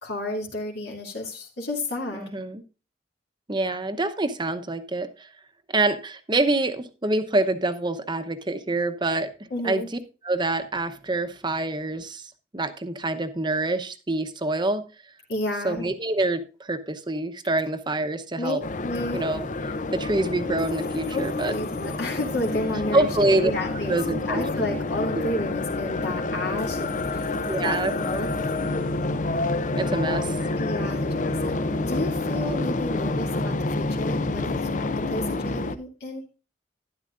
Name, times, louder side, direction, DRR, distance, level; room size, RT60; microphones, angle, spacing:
voice 1, 0.0-2.3 9.5-9.9 15.3-15.9 18.4-18.6 18.8-19.2 21.1-23.1 23.3-24.0 24.2-27.3 27.6-28.3 30.6-34.7 35.1-36.2, left 1 dB, 65° left, -2 dB, 2.6 m, -31 dB
voice 2, 2.1-2.6 3.5-5.3 5.7-9.3 9.6-9.8 10.2-14.9 15.6-18.6 19.1-19.4 19.9-21.5 22.9-23.5 23.9-24.8 27.5-27.9 29.8-30.3, right 2 dB, 25° right, 9 dB, 0.9 m, -26 dB
sound 1, 18.6-35.8, left 2 dB, 45° left, 0.7 m, -28 dB
sound 2, 20.6-24.0 26.6-30.0, left 8 dB, 20° left, 2.1 m, -50 dB
12.0 x 11.0 x 2.5 m, 0.33 s
head